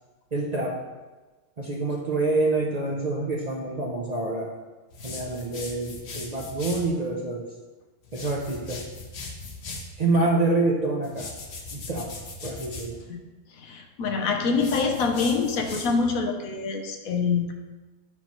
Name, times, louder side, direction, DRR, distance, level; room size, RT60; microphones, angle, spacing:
voice 1, 0.3-0.8 1.6-4.6 5.0-7.6 8.1-8.9 10.0-11.3 11.7-13.1, right 2 dB, 40° right, -2 dB, 0.6 m, -27 dB
sound 1, 4.9-6.9 8.0-9.9 11.0-12.9 14.5-16.1, left 3 dB, 55° left, 1.1 m, -39 dB
voice 2, 13.5-17.5, left 4 dB, 85° left, 4 dB, 1.2 m, -25 dB
7.6 x 5.6 x 3.0 m, 1.2 s
omnidirectional pair, 1.5 m